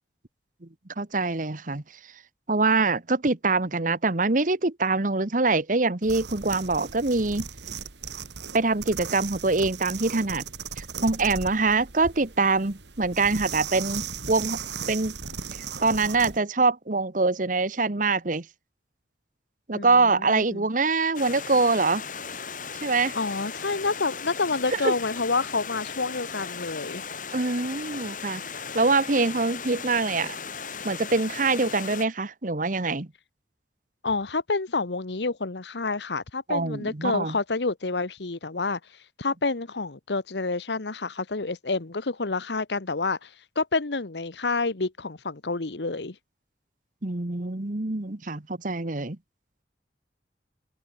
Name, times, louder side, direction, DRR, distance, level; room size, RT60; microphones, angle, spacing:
voice 1, 1.0-1.8 2.5-7.5 8.5-10.4 10.8-14.6 14.9-15.1 15.6-18.4 19.7-22.0 22.8-23.1 24.8-24.9 27.3-28.4 28.7-30.4 30.8-33.1 36.5-37.4 47.0-49.2, right 3 dB, 50° right, 1.3 m, -24 dB
sound 1, 6.0-16.4, right 6 dB, 85° right, 3.1 m, -37 dB
voice 2, 19.7-20.7 23.1-27.0 34.0-38.8 39.2-46.1, left 3 dB, 80° left, 1.2 m, -28 dB
Stream, 21.1-32.0, left 6 dB, 50° left, 6.5 m, -37 dB
open air
head